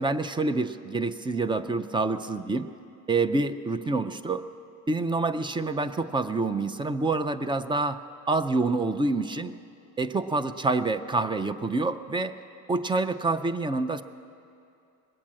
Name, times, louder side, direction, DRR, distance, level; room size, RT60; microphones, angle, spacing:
voice 1, 0.0-2.7 3.1-4.4 4.9-8.0 8.3-9.5 10.0-12.4 12.7-14.0, right 3 dB, 15° right, 10 dB, 0.3 m, -27 dB
20.5 x 8.8 x 7.4 m, 2.6 s
cardioid pair, 130°, 36 cm